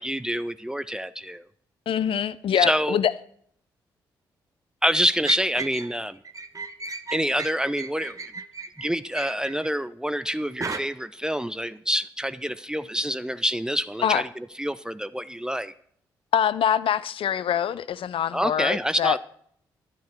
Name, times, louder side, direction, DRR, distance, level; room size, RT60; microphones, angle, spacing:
voice 1, 0.0-1.4 2.6-3.0 4.8-6.2 7.1-8.2 8.8-14.3 14.6-15.7 18.3-19.2, equal, 5° right, 0.5 m, -26 dB
voice 2, 1.9-3.1 14.0-14.2 16.3-19.2, left 9 dB, 60° left, 0.6 m, -24 dB
sound 1, 4.9-5.9 6.2-9.7 10.6-10.8, right 3 dB, 35° right, 1.0 m, -35 dB
11.5 x 10.5 x 4.4 m
hypercardioid pair, 40°, 10 cm